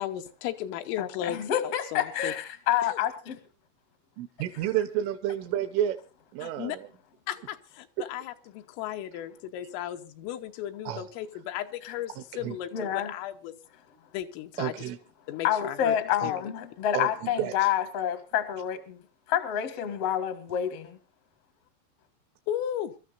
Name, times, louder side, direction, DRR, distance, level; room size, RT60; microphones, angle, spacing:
voice 1, 0.0-2.3 2.9-3.0 6.4-6.8 7.3-13.5 14.1-14.9 15.3-16.0 16.2-16.5 22.5-22.9, left 11 dB, 85° left, 3.6 m, -35 dB
voice 2, 1.0-3.4 12.7-13.1 15.4-19.0 19.3-21.0, left 10 dB, 65° left, 1.5 m, -28 dB
voice 3, 4.2-6.0 6.3-6.9 10.9-11.1 12.4-12.6 14.6-15.0 16.2-16.3 16.9-17.1 17.4-17.7, right 11 dB, 80° right, 3.4 m, -30 dB
26.5 x 13.5 x 2.6 m
omnidirectional pair, 5.8 m